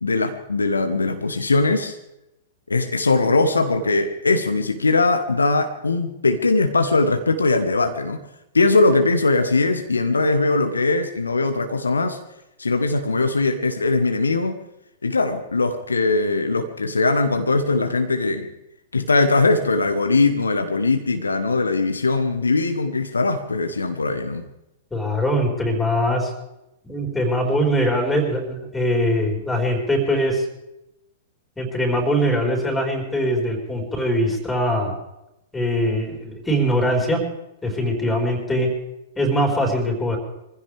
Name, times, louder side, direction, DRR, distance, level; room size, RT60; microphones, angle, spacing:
voice 1, 0.0-2.0 2.7-8.2 8.5-12.2 12.6-14.6 15.0-18.5 18.9-24.4, left 3 dB, 75° left, 7 dB, 1.3 m, -20 dB
voice 2, 24.9-26.3 26.8-30.4 31.6-34.9 35.5-37.2 37.6-38.7 39.2-40.2, equal, 10° left, 1 dB, 4.8 m, -22 dB
25.0 x 15.5 x 3.5 m, 0.88 s
figure-of-eight pair, 100°, 0 cm